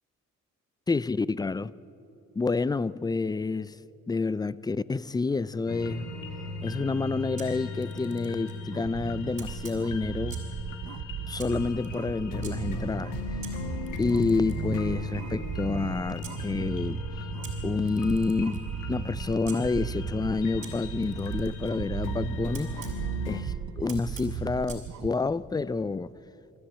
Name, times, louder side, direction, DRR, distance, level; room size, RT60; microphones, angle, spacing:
voice 1, 0.9-1.7 2.4-3.8 4.1-6.1 6.6-10.4 11.3-13.1 14.0-17.0 17.6-22.7 23.3-26.1, left 3 dB, 15° left, 0.4 m, -29 dB
sound 1, 5.7-23.4, left 2 dB, 90° left, 2.2 m, -37 dB
Camera, 7.4-8.6 9.4-10.6 11.4-12.5 13.4-16.4 17.4-19.6 20.6-23.0 23.9-24.9, right 5 dB, 45° right, 5.1 m, -49 dB
sound 2, 8.7-25.1, right 9 dB, 65° right, 0.9 m, -37 dB
22.5 x 14.0 x 8.9 m
cardioid pair, 90°, 30 cm